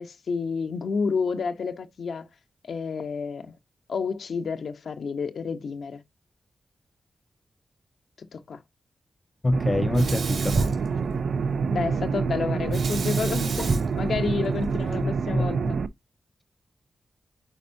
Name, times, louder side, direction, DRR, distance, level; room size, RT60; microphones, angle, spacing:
voice 1, 0.0-2.3 2.6-3.5 3.9-6.0 8.2-8.6 11.1-11.2 11.7-15.8, left 5 dB, 75° left, 0.9 m, -30 dB
voice 2, 9.4-10.6 15.0-15.7, left 2 dB, 30° left, 0.4 m, -27 dB
sound 1, 9.5-15.9, right 5 dB, 75° right, 0.4 m, -27 dB
Sink (filling or washing), 9.9-11.6 12.7-15.0, right 3 dB, 90° right, 2.2 m, -31 dB
9.0 x 4.2 x 2.7 m
cardioid pair, 70°, 0 cm